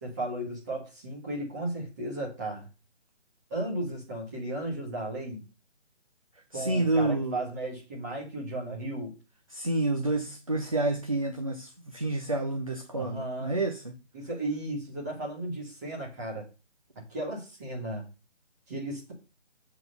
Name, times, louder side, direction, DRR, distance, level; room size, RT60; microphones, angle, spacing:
voice 1, 0.0-2.7 3.5-5.4 6.5-9.1 12.9-13.6 14.1-16.4 16.9-18.0 18.7-19.1, right 1 dB, 15° right, -3 dB, 1.7 m, -35 dB
voice 2, 6.5-7.4 9.5-13.9, right 2 dB, 30° right, 5 dB, 0.5 m, -29 dB
7.5 x 4.1 x 6.6 m, 0.31 s
figure-of-eight pair, 170°, 36 cm